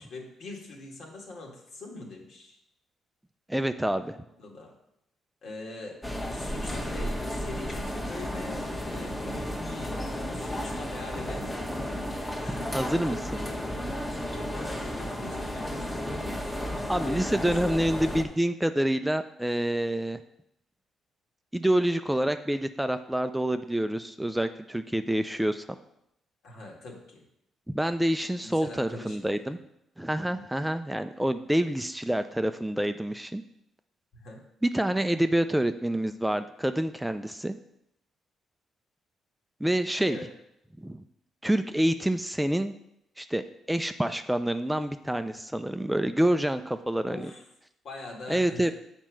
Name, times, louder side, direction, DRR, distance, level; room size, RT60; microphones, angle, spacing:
voice 1, 0.0-2.6 4.1-4.7 5.4-6.0 6.3-10.0 10.3-11.7 12.4-16.3 17.0-17.8 26.4-27.2 28.4-29.6 30.3-30.5 34.1-34.4 40.1-40.3 47.0-47.4 47.8-48.7, left 2 dB, 70° left, 0 dB, 2.0 m, -43 dB
voice 2, 3.5-4.2 12.5-13.2 16.9-20.2 21.5-25.7 27.7-29.6 30.0-33.4 34.6-37.6 39.6-40.2 40.8-41.0 41.4-42.7 43.2-47.3 48.3-48.7, right 1 dB, 5° right, 9 dB, 0.4 m, -27 dB
sound 1, 6.0-18.2, equal, 15° left, 1.2 m, -33 dB
7.3 x 4.5 x 6.2 m, 0.79 s
cardioid pair, 90°, 0 cm